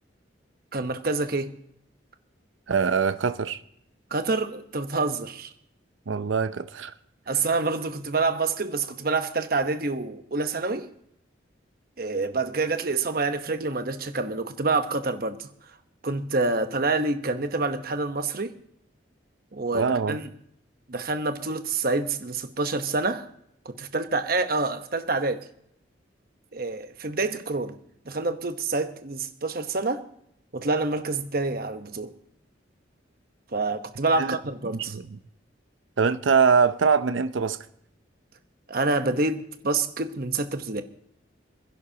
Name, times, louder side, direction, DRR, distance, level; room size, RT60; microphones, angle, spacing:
voice 1, 0.7-1.5 4.1-5.5 7.3-10.9 12.0-15.5 16.0-18.5 19.5-20.3 20.9-23.3 23.6-25.5 26.5-27.8 28.1-30.1 30.5-32.1 33.5-35.0 38.7-40.8, right 3 dB, 50° right, 1.0 m, -27 dB
voice 2, 2.7-3.6 6.1-6.9 19.7-20.2 34.2-34.4 34.7-35.2 36.0-37.7, right 5 dB, 80° right, 0.6 m, -23 dB
26.5 x 11.0 x 2.8 m
head